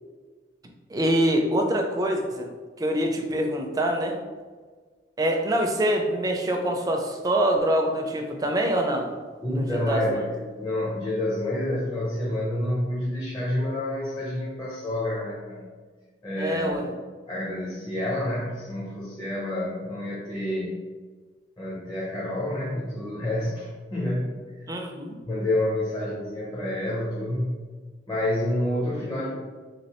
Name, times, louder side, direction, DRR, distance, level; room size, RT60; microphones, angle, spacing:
voice 1, 0.9-2.5 2.8-4.2 5.2-9.1 9.6-10.0 16.4-16.8 24.7-25.2, right 1 dB, 20° right, 2 dB, 0.4 m, -25 dB
voice 2, 9.4-15.7 16.2-16.9 17.3-20.8 21.6-24.8 25.3-27.5 28.1-29.4, left 1 dB, 25° left, -7 dB, 0.7 m, -28 dB
3.1 x 2.9 x 2.9 m, 1.4 s
head